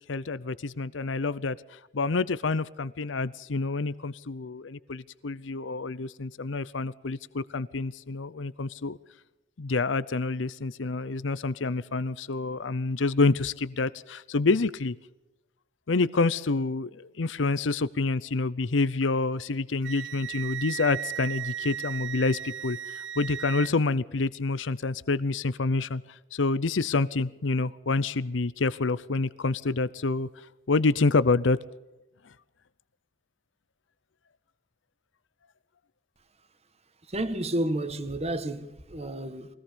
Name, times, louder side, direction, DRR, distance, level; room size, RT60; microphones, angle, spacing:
voice 1, 0.1-9.0 9.6-14.9 15.9-26.0 26.3-30.3 30.7-31.6, left 3 dB, 85° left, 0.7 m, -27 dB
Wind instrument woodwind instrument, 19.8-23.7, right 10 dB, 75° right, 0.8 m, -36 dB
voice 2, 37.1-39.5, right 1 dB, 35° right, 1.7 m, -31 dB
23.5 x 18.0 x 6.9 m
head